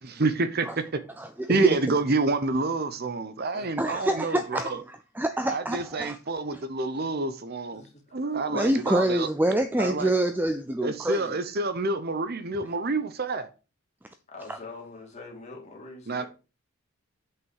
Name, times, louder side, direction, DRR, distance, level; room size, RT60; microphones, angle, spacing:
voice 1, 0.0-1.0 1.5-4.8 5.5-7.8 8.1-9.3 9.8-10.1 10.8-13.5 16.1-16.2, right 3 dB, 45° right, 0.7 m, -28 dB
voice 2, 1.2-1.8 3.8-6.2 8.5-11.3 14.5-14.6, right 1 dB, 10° right, 0.4 m, -26 dB
voice 3, 3.5-3.9 7.7-8.2 14.3-16.3, left 3 dB, 30° left, 2.5 m, -44 dB
8.0 x 6.0 x 4.7 m
head